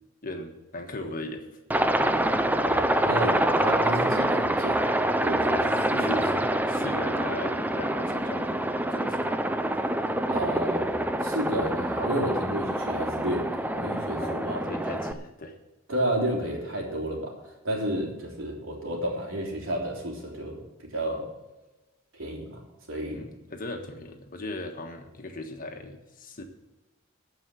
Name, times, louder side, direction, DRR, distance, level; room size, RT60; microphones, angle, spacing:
voice 1, 0.2-1.4 5.9-8.6 8.9-9.4 14.2-15.6 23.1-26.4, left 2 dB, 45° left, 4 dB, 1.4 m, -38 dB
Aircraft, 1.7-15.1, right 1 dB, 10° right, 0.5 m, -26 dB
voice 2, 2.7-6.4 10.3-14.6 15.9-21.3 22.1-23.3, right 1 dB, 75° right, -1 dB, 3.5 m, -31 dB
14.5 x 5.5 x 9.1 m, 1.1 s
head